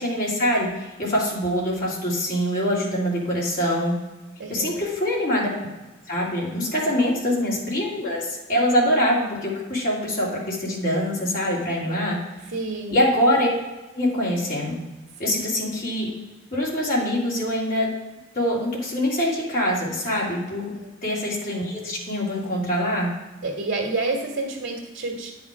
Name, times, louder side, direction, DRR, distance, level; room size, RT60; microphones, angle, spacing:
voice 1, 0.0-3.9 4.5-5.5 6.1-12.2 12.9-13.5 13.9-14.8 15.2-16.1 16.5-17.9 18.3-20.7 21.0-23.1, equal, 45° left, -5 dB, 2.8 m, -24 dB
voice 2, 4.4-4.8 6.8-6.9 12.5-13.0 15.2-15.4 20.7-20.9 23.4-25.3, right 2 dB, 75° right, -2 dB, 1.7 m, -29 dB
9.5 x 6.0 x 4.8 m, 1.1 s
head